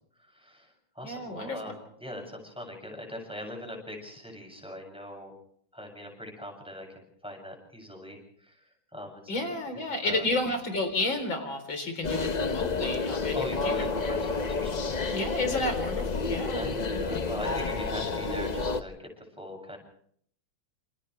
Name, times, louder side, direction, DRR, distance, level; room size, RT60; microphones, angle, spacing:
voice 1, 0.2-5.3 5.7-9.4 10.0-10.2 13.3-15.0 16.5-19.8, left 1 dB, 5° right, 1 dB, 7.6 m, -41 dB
voice 2, 1.0-1.7 9.3-13.8 15.0-16.7 16.9-17.2, left 2 dB, 85° left, 6 dB, 4.8 m, -31 dB
sound 1, 12.0-18.8, left 4 dB, 45° left, 0.5 m, -30 dB
28.5 x 28.5 x 3.4 m, 0.64 s
omnidirectional pair, 2.1 m